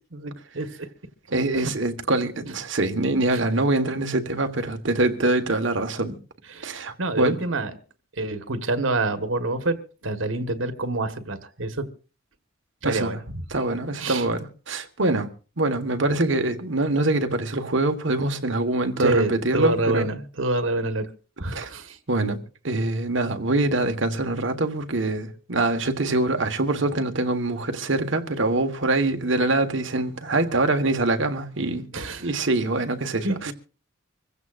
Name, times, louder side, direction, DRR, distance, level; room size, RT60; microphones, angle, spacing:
voice 1, 0.1-0.7 1.5-1.7 6.5-7.7 8.2-11.9 12.8-13.2 13.9-14.2 19.0-21.0 21.4-22.0 31.9-32.3 33.2-33.5, right 2 dB, 90° right, 1.5 m, -26 dB
voice 2, 1.3-6.1 6.6-7.4 12.8-13.1 13.5-15.3 15.6-20.1 21.5-21.7 22.1-22.4 22.6-31.8 32.2-33.5, right 2 dB, 70° right, 1.5 m, -24 dB
25.5 x 15.5 x 2.6 m
head